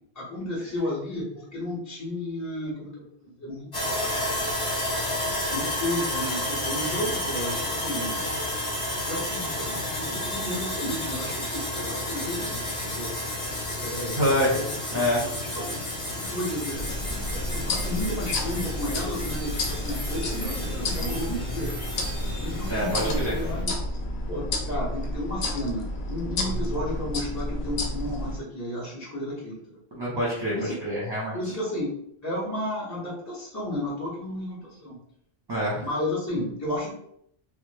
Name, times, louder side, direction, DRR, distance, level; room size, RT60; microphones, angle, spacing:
voice 1, 0.1-4.1 5.5-8.2 9.0-13.1 13.8-14.7 15.2-16.9 17.3-21.7 22.4-23.8 24.3-29.8 30.5-30.8 31.3-31.9 32.2-35.0 35.8-36.9, left 1 dB, 20° left, -8 dB, 0.8 m, -33 dB
Sawing, 3.7-23.6, left 1 dB, 55° left, 1.1 m, -31 dB
voice 2, 14.1-14.6 14.9-15.2 22.7-23.3 29.9-31.4 35.5-35.9, equal, 25° right, -8 dB, 0.9 m, -26 dB
sound 1, 16.7-28.4, left 1 dB, 75° left, 0.8 m, -31 dB
3.2 x 2.0 x 3.2 m, 0.71 s
omnidirectional pair, 1.1 m